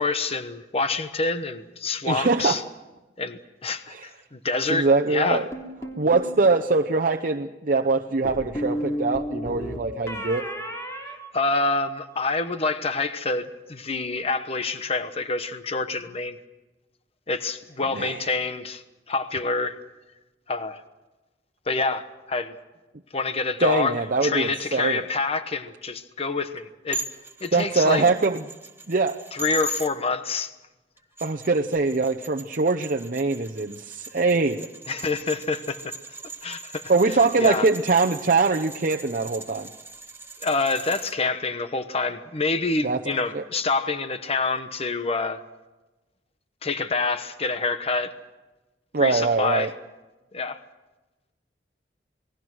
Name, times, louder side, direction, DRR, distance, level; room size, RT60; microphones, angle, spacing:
voice 1, 0.0-2.6 3.2-5.5 11.3-16.4 17.3-19.8 20.5-20.8 21.7-22.5 23.1-27.0 27.4-28.0 29.3-30.5 34.9-36.0 36.4-37.7 40.4-45.4 46.6-48.2 49.0-49.7 50.3-50.6, left 3 dB, 35° left, 10 dB, 1.1 m, -27 dB
voice 2, 2.1-2.6 3.9-4.1 4.7-5.4 6.0-10.5 17.9-18.2 23.6-25.0 27.5-28.4 28.9-29.2 31.2-34.7 36.9-39.7 42.8-43.0 43.3-43.4 48.9-49.7, right 3 dB, 50° right, 3 dB, 0.8 m, -23 dB
sound 1, 5.5-6.3 8.2-12.0, equal, 15° left, 3.4 m, -33 dB
sound 2, 26.9-29.9 31.0-41.2, right 1 dB, 15° right, 1.5 m, -39 dB
28.5 x 20.0 x 6.3 m, 1.1 s
head